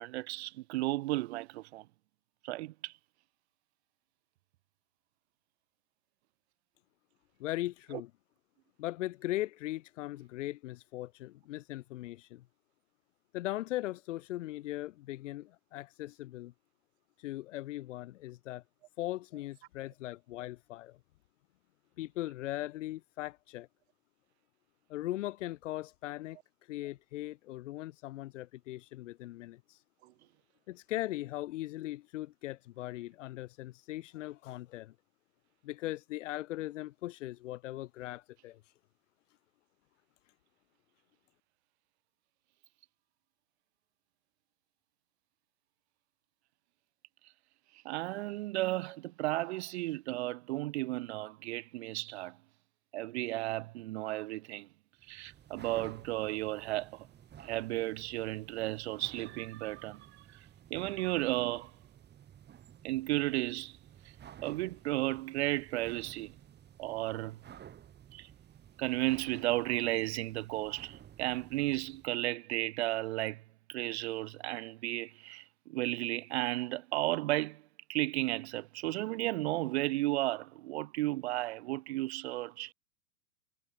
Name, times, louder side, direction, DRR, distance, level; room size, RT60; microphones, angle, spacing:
voice 1, 0.0-1.9 2.4-2.9 7.9-8.0 30.0-30.1 47.8-52.4 52.9-54.7 55.1-57.1 57.4-61.7 62.8-63.8 64.4-66.4 66.8-67.4 68.1-68.3 68.8-73.4 73.7-77.6 77.9-82.7, right 18 dB, 45° right, 0.8 m, -34 dB
voice 2, 7.4-8.1 8.8-12.5 13.3-16.5 17.2-18.6 19.0-21.0 22.0-23.7 24.9-26.4 26.7-29.8 30.7-34.9 35.6-38.6, left 16 dB, 50° left, 0.9 m, -39 dB
sound 1, 55.0-72.2, right 10 dB, 20° right, 3.3 m, -54 dB
figure-of-eight pair, 105°, 47 cm